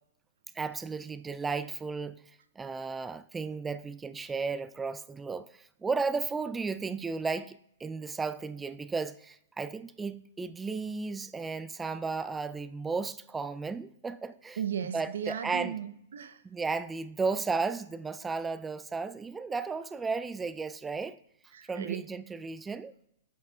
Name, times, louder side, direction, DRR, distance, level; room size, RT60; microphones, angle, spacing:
voice 1, 0.5-2.2 2.6-14.6 14.9-15.8 16.4-21.2 21.7-22.9, right 4 dB, 10° right, 0.3 m, -34 dB
voice 2, 14.6-16.4 21.5-22.1, right 8 dB, 75° right, 0.6 m, -36 dB
10.0 x 6.4 x 2.3 m
hypercardioid pair, 125°, 0 cm